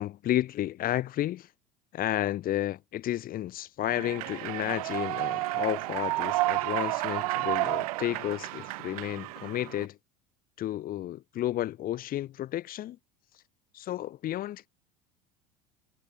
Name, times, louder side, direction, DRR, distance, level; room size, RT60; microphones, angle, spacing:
voice 1, 0.0-1.5 1.9-10.0 10.6-13.0 13.7-14.7, left 13 dB, 50° left, 3.5 m, -32 dB
Human voice / Clapping / Cheering, 3.9-9.8, right 21 dB, 70° right, 1.5 m, -31 dB
hypercardioid pair, 75°, 19 cm